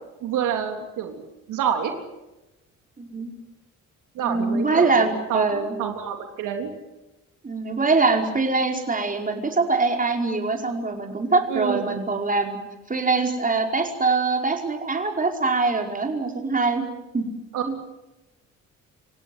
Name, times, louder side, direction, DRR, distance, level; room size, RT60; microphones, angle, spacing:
voice 1, 0.2-1.2 1.5-2.0 4.2-6.7 11.5-12.0 17.5-17.8, right 8 dB, 90° right, 4 dB, 3.6 m, -28 dB
voice 2, 3.0-3.3 4.2-5.8 7.4-12.6 12.9-16.8 17.1-17.3 17.6-17.7, right 3 dB, 25° right, 3 dB, 5.2 m, -23 dB
28.5 x 17.5 x 9.5 m, 1.0 s
cardioid pair, 90°, 30 cm